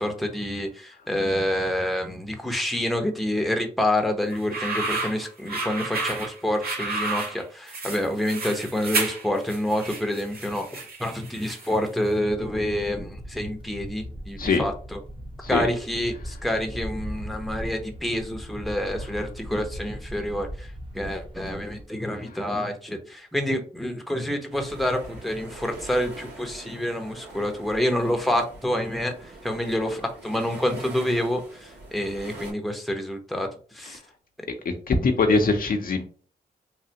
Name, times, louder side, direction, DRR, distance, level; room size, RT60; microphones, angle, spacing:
voice 1, 0.0-15.0 15.5-33.5 33.7-34.0, left 1 dB, ahead, 4 dB, 0.7 m, -28 dB
sound 1, 4.3-11.9, right 3 dB, 65° right, 1.2 m, -31 dB
sound 2, 12.3-21.8, equal, 30° right, 0.9 m, -39 dB
sound 3, 24.5-32.5, right 2 dB, 85° right, 1.5 m, -43 dB
voice 2, 34.6-36.0, left 3 dB, 60° left, 4 dB, 0.7 m, -22 dB
3.2 x 2.4 x 2.8 m, 0.40 s
cardioid pair, 60°, 17 cm